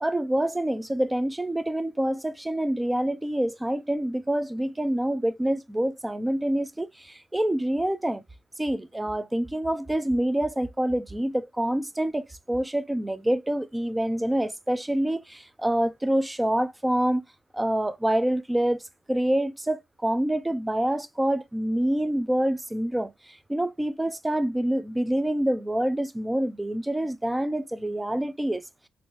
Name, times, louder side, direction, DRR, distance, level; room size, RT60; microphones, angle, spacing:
voice 1, 0.0-8.2 8.6-17.2 17.5-18.8 19.1-28.6, right 1 dB, 10° right, 0.4 m, -26 dB
3.1 x 2.5 x 3.1 m
cardioid pair, 90°, 0 cm